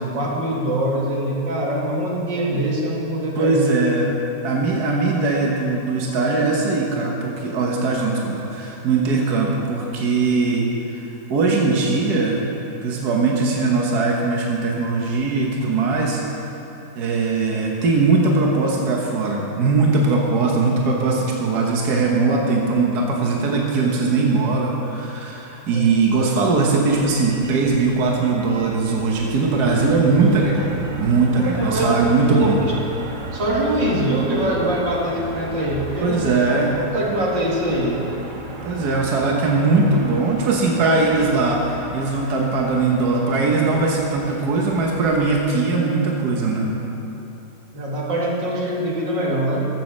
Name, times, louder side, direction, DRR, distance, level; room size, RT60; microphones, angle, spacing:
voice 1, 0.1-3.6 25.7-25.9 31.4-32.0 32.3-32.7 33.3-36.2 36.9-38.0 47.7-49.7, right 1 dB, 90° right, -3 dB, 2.6 m, -23 dB
voice 2, 3.3-4.1 4.4-11.0 11.3-12.4 12.8-16.2 17.0-32.6 36.0-36.8 38.6-46.7, right 3 dB, 65° right, -1 dB, 1.8 m, -20 dB
Motor vehicle (road), 26.9-45.4, right 2 dB, 35° right, 1.0 m, -35 dB
14.0 x 7.7 x 6.5 m, 2.9 s
omnidirectional pair, 1.9 m